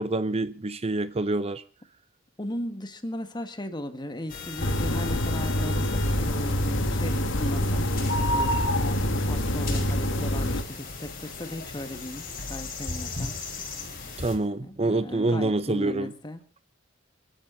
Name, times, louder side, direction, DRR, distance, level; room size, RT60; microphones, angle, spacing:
voice 1, 0.0-1.6 14.2-16.1, right 2 dB, 30° right, 0.7 m, -26 dB
voice 2, 2.4-8.5 9.1-13.4 14.6-16.4, left 1 dB, 20° left, 1.8 m, -37 dB
sound 1, 4.3-14.3, left 3 dB, 45° left, 5.0 m, -38 dB
sound 2, 4.6-10.6, left 1 dB, 65° left, 1.7 m, -26 dB
29.5 x 12.0 x 4.0 m
head